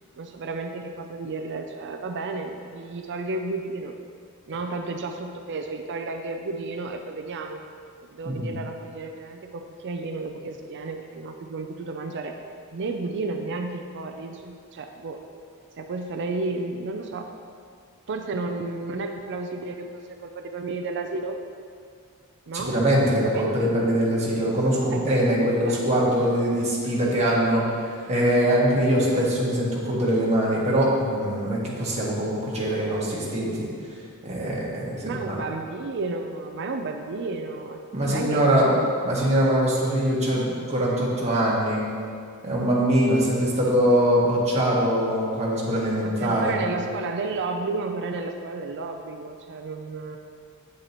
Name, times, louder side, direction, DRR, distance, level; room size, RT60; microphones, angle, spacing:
voice 1, 0.2-3.9 4.5-7.6 8.0-12.4 12.7-15.2 15.8-17.3 18.1-21.4 22.5-22.7 23.2-23.7 24.9-25.1 25.7-25.8 29.1-29.3 35.0-38.9 39.1-39.3 46.0-50.2, right 3 dB, 55° right, 5 dB, 0.5 m, -32 dB
voice 2, 22.5-27.7 28.1-33.7 34.2-35.4 37.9-38.7 39.0-41.9 42.4-46.6, equal, 30° right, -5 dB, 1.6 m, -23 dB
8.1 x 7.6 x 3.0 m, 2.3 s
head